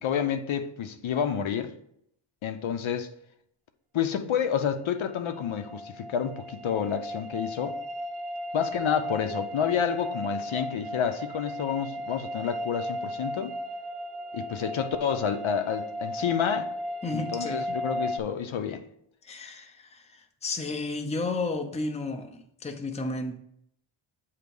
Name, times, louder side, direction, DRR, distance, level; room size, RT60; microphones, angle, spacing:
voice 1, 0.0-1.7 2.4-3.1 3.9-7.7 8.5-13.5 14.3-16.7 17.1-18.8, left 8 dB, 70° left, 0.7 m, -29 dB
sound 1, 5.0-18.2, equal, 80° right, 0.7 m, -35 dB
voice 2, 17.0-17.8 19.2-23.4, left 3 dB, 15° left, 0.5 m, -33 dB
8.0 x 2.8 x 5.3 m
wide cardioid pair, 170°, 49 cm